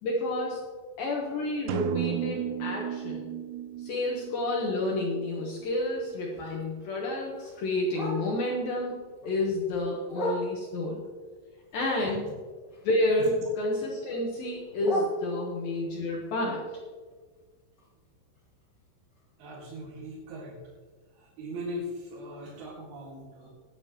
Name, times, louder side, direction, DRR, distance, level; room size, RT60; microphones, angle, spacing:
voice 1, 0.0-0.6 1.0-3.3 3.8-11.0 11.7-12.3 12.8-16.6, left 1 dB, 65° left, -2 dB, 2.6 m, -30 dB
sound 1, 1.7-5.5, right 13 dB, 85° right, 2.7 m, -34 dB
Bark, 5.4-8.6 9.0-10.9 11.4-13.2 13.5-15.8 16.2-20.1 20.5-20.6 20.9-21.3 21.7-21.8 22.1-22.2 22.7-22.8, equal, 25° left, 3.3 m, -40 dB
voice 2, 19.4-20.6 21.1-23.5, equal, 65° right, -6 dB, 3.7 m, -40 dB
19.5 x 9.3 x 3.0 m, 1.5 s
omnidirectional pair, 5.1 m